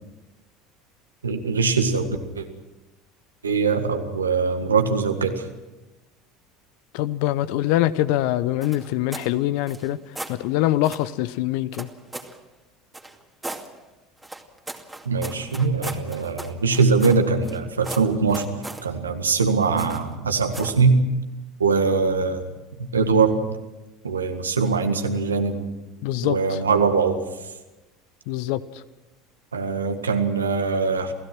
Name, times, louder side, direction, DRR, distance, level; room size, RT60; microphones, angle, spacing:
voice 1, 1.2-2.5 3.4-5.5 15.1-18.5 18.8-21.0 21.6-22.5 22.8-23.4 24.0-25.6 26.2-27.2 29.5-31.1, right 4 dB, 85° right, 6 dB, 1.8 m, -22 dB
voice 2, 6.9-10.0 10.3-11.9 26.0-26.6 28.3-28.6, left 14 dB, 60° left, 16 dB, 0.9 m, -24 dB
sound 1, 8.6-9.3 9.6-10.4 10.8-11.1 11.7-12.4 12.9-13.7 14.2-17.6 17.8-18.9 19.8-20.1 20.5-20.8, right 2 dB, 5° right, 2.4 m, -37 dB
28.5 x 16.5 x 6.1 m, 1.1 s
figure-of-eight pair, 75°, 0 cm